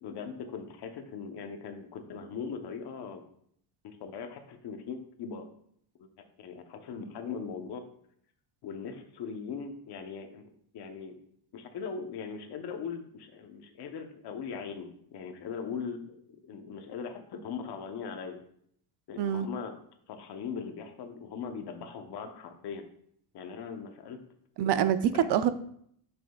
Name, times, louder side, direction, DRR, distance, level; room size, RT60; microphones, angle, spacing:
voice 1, 0.0-3.2 3.8-5.5 6.0-6.1 6.4-7.8 8.6-10.4 10.7-11.2 11.5-18.4 19.1-19.7 20.1-22.8 23.3-24.2, left 6 dB, 50° left, 6 dB, 0.9 m, -40 dB
voice 2, 24.6-25.5, right 9 dB, 55° right, 12 dB, 0.5 m, -25 dB
9.4 x 6.1 x 2.3 m, 0.66 s
cardioid pair, 175°, 49 cm